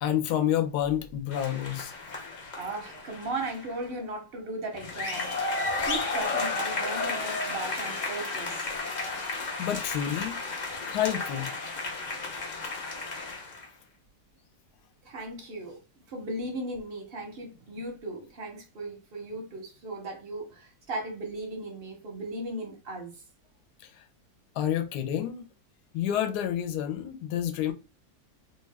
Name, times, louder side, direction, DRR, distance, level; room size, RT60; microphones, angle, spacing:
voice 1, 0.0-1.9 9.3-10.4 10.9-11.5 23.8-24.0 24.5-25.4 25.9-27.7, left 10 dB, 80° left, 1.1 m, -29 dB
sound 1, 1.3-3.8 4.7-13.7, left 3 dB, 55° left, 0.4 m, -33 dB
voice 2, 2.6-5.4 5.8-8.7 15.0-15.8 16.1-23.2, right 2 dB, 55° right, 0.7 m, -37 dB
2.8 x 2.3 x 3.3 m
omnidirectional pair, 1.7 m